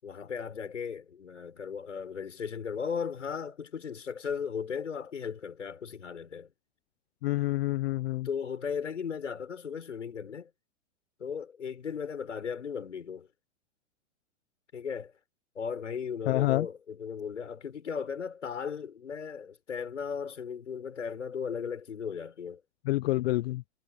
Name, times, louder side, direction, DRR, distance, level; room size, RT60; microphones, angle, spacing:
voice 1, 0.0-6.5 8.2-10.5 11.2-13.3 14.7-15.1 15.5-22.6, left 6 dB, 85° left, 6.7 m, -36 dB
voice 2, 7.2-8.3 16.3-16.7 22.8-23.6, left 17 dB, 55° left, 1.0 m, -27 dB
hypercardioid pair, 110°, 36 cm